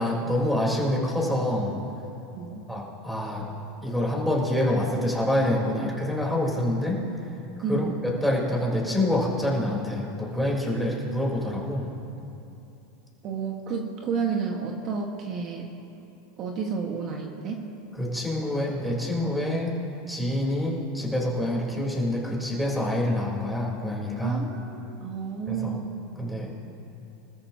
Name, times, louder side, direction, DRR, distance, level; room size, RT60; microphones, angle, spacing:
voice 1, 0.0-1.8 2.7-3.5 3.8-7.0 7.7-11.9 18.0-19.7 20.1-24.4 25.5-25.7 26.2-26.5, left 1 dB, ahead, -4 dB, 3.9 m, -26 dB
voice 2, 7.6-7.9 13.2-15.7 16.4-17.7 24.2-25.9, right 5 dB, 45° right, 1 dB, 1.5 m, -31 dB
25.5 x 14.0 x 2.9 m, 2.8 s
supercardioid pair, 120°, 0 cm